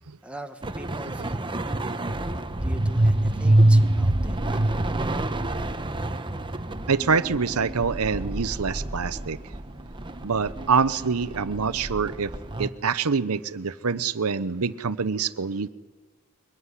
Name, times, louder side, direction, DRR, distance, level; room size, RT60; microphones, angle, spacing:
voice 1, 0.2-2.0 2.6-5.0, right 1 dB, 5° right, 5 dB, 1.4 m, -42 dB
sound 1, 0.6-12.7, right 1 dB, 20° right, 1.1 m, -26 dB
voice 2, 6.9-9.4 10.2-12.3 12.6-15.7, right 5 dB, 80° right, 14 dB, 0.8 m, -25 dB
24.0 x 20.5 x 9.9 m, 1.4 s
head